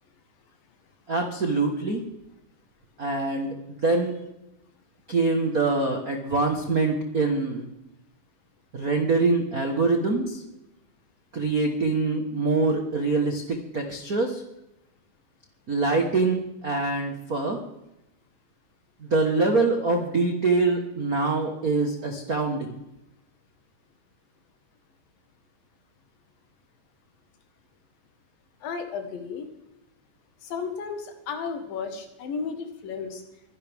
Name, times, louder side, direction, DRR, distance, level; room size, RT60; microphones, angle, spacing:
voice 1, 1.1-2.0 3.0-4.2 5.1-7.7 8.7-10.4 11.3-14.4 15.7-17.6 19.0-22.8, right 3 dB, 60° right, 3 dB, 0.9 m, -24 dB
voice 2, 28.6-29.5 30.4-33.2, left 5 dB, 80° left, 6 dB, 3.3 m, -33 dB
23.5 x 11.0 x 3.6 m, 0.89 s
omnidirectional pair, 4.0 m